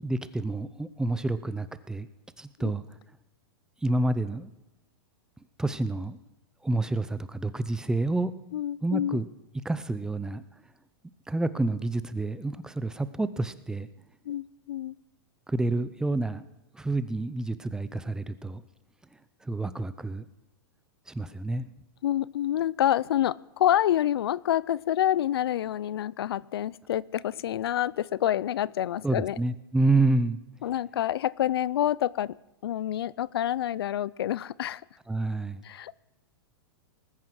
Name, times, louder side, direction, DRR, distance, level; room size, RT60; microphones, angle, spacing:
voice 1, 0.0-2.1 2.4-2.8 3.8-4.5 5.6-6.2 6.6-8.3 8.8-9.2 9.6-10.4 11.3-13.9 15.5-16.4 16.7-18.6 19.4-20.3 21.1-21.7 29.0-30.4 35.1-35.6, right 2 dB, 5° right, 14 dB, 0.6 m, -28 dB
voice 2, 8.5-9.2 14.3-14.9 22.0-29.4 30.6-32.4 32.6-34.8 35.6-35.9, left 11 dB, 80° left, 23 dB, 0.4 m, -27 dB
19.5 x 9.4 x 6.2 m, 0.96 s
hypercardioid pair, 135°, 13 cm